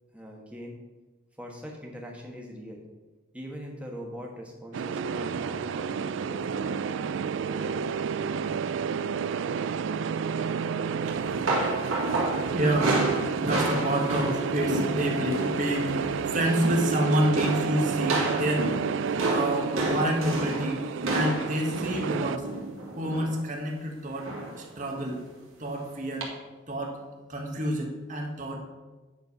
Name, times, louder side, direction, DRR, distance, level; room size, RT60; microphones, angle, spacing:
voice 1, 0.1-0.8 1.4-2.8 3.3-6.8, equal, 5° right, -1 dB, 1.2 m, -42 dB
sound 1, 4.7-22.4, right 6 dB, 65° right, 0.3 m, -31 dB
sound 2, 11.1-15.6 15.9-16.2 16.5-17.0 17.4-23.4 24.2-24.6 25.0-25.1 26.2-26.3, right 2 dB, 85° right, 2.1 m, -30 dB
voice 2, 12.5-13.0 13.4-16.0 16.3-18.7 19.2-22.5 23.0-25.2 25.6-26.3 26.7-27.0 27.3-28.6, right 1 dB, 40° right, 1 dB, 1.4 m, -28 dB
9.4 x 4.5 x 5.4 m, 1.2 s
head